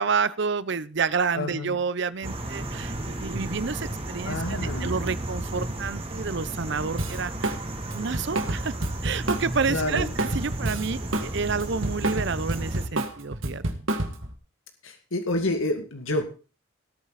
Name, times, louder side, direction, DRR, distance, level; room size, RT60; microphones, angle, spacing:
voice 1, 0.0-7.6 7.9-8.7 9.0-13.6, right 5 dB, 60° right, 17 dB, 0.7 m, -29 dB
voice 2, 1.3-1.8 4.3-5.1 9.7-10.1 14.8-16.2, left 1 dB, 85° left, 5 dB, 2.2 m, -29 dB
sound 1, 2.2-12.9, right 1 dB, 30° right, 2.8 m, -33 dB
Drum kit, 7.0-7.6 7.9-11.3 11.6-14.3, right 1 dB, 85° right, 2.1 m, -29 dB
18.5 x 9.1 x 4.2 m, 0.35 s
head